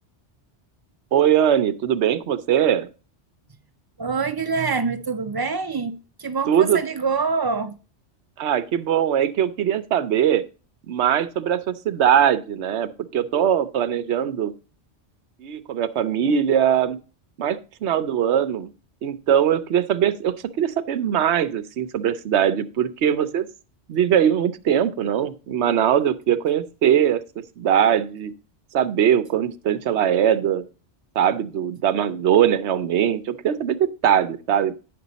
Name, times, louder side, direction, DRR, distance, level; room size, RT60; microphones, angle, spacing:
voice 1, 1.1-2.9 6.5-6.8 8.4-10.4 10.9-14.5 15.4-17.0 17.4-18.7 19.0-23.5 23.9-27.2 27.6-28.3 28.7-30.6 31.2-33.8 34.0-34.7, right 9 dB, 75° right, 1.0 m, -21 dB
voice 2, 4.0-7.8, right 4 dB, 35° right, 0.3 m, -25 dB
9.7 x 6.1 x 4.0 m
omnidirectional pair, 1.2 m